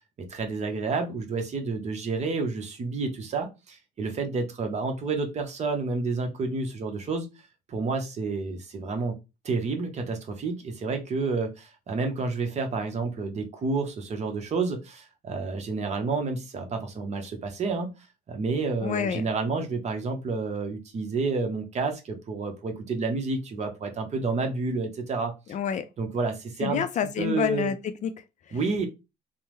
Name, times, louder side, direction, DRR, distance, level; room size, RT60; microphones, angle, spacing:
voice 1, 0.2-7.3 7.7-9.2 9.4-17.9 18.3-25.3 26.0-26.8 27.2-27.7 28.5-28.9, right 4 dB, 40° right, 0.8 m, -29 dB
voice 2, 18.8-19.3 25.5-25.9 26.6-27.8 28.0-28.1 28.5-28.6, left 8 dB, 45° left, 0.4 m, -28 dB
3.4 x 2.1 x 3.0 m
cardioid pair, 110°, 17 cm